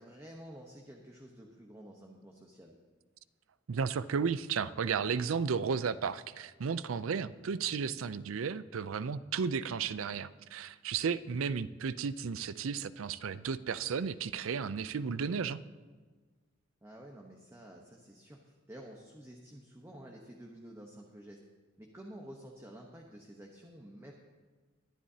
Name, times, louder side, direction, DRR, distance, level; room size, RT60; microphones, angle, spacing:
voice 1, 0.0-2.7 16.8-21.4 21.8-24.1, right 1 dB, 15° right, 0 dB, 1.0 m, -50 dB
voice 2, 3.7-15.6, right 6 dB, 90° right, 16 dB, 0.5 m, -34 dB
22.0 x 10.5 x 2.8 m, 1.4 s
head